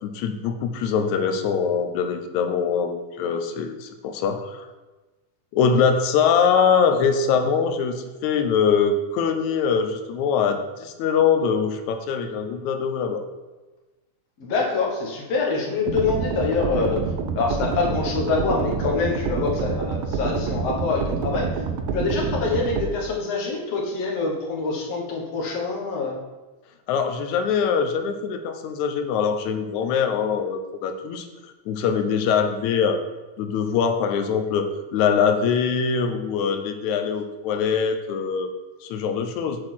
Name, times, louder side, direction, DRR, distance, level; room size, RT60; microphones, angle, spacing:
voice 1, 0.0-4.7 5.5-13.3 26.9-31.3 31.7-33.0 33.4-38.5 38.8-39.6, left 6 dB, 75° left, 7 dB, 2.0 m, -23 dB
voice 2, 14.4-17.0 17.3-21.6 21.9-26.2, left 4 dB, 60° left, -1 dB, 2.3 m, -25 dB
sound 1, 15.9-22.9, right 5 dB, 80° right, 2.0 m, -27 dB
7.6 x 4.4 x 6.2 m, 1.2 s
omnidirectional pair, 3.5 m